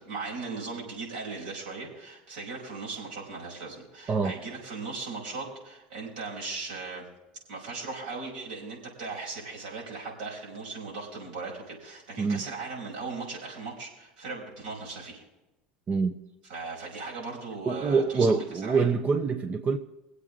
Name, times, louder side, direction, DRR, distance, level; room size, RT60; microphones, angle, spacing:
voice 1, 0.0-7.1 7.5-15.2 16.4-18.8, right 4 dB, 85° right, 5.5 m, -38 dB
voice 2, 15.9-16.2 17.7-19.8, right 4 dB, 35° right, 0.9 m, -25 dB
24.5 x 8.2 x 3.8 m
hypercardioid pair, 80°, 5 cm